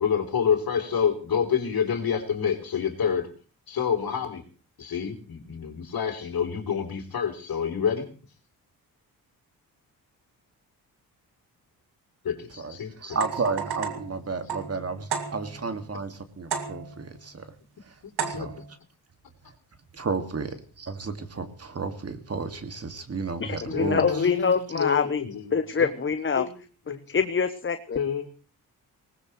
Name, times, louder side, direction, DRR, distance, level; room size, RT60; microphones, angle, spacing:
voice 1, 0.0-3.3 3.7-4.4 4.8-8.1 12.2-13.2 18.0-18.5 23.7-25.9 26.4-26.5 26.9-27.0 28.0-28.3, left 7 dB, 65° left, 4 dB, 3.4 m, -28 dB
voice 2, 12.6-17.5 18.3-18.5 19.9-24.2, right 4 dB, 40° right, 8 dB, 2.1 m, -32 dB
sound 1, 13.1-15.7 16.5-17.1 18.2-18.7, right 6 dB, 75° right, 2.3 m, -33 dB
voice 3, 23.4-25.2 25.5-26.5 27.1-28.0, left 5 dB, 30° left, 9 dB, 0.9 m, -25 dB
20.0 x 19.0 x 3.2 m, 0.36 s
cardioid pair, 65°, 38 cm